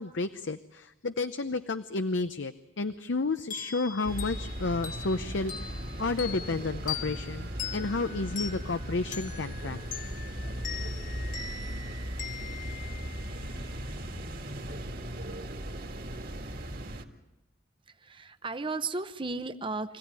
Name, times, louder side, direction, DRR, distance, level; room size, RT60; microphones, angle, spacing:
voice 1, 0.0-9.8, left 3 dB, 75° left, 10 dB, 0.7 m, -31 dB
sound 1, 3.5-13.8, left 8 dB, 45° left, 1.7 m, -41 dB
sound 2, 4.1-17.0, right 1 dB, 50° right, 2.0 m, -38 dB
voice 2, 17.9-20.0, right 3 dB, 25° right, 11 dB, 0.8 m, -35 dB
25.0 x 17.0 x 9.7 m, 0.95 s
head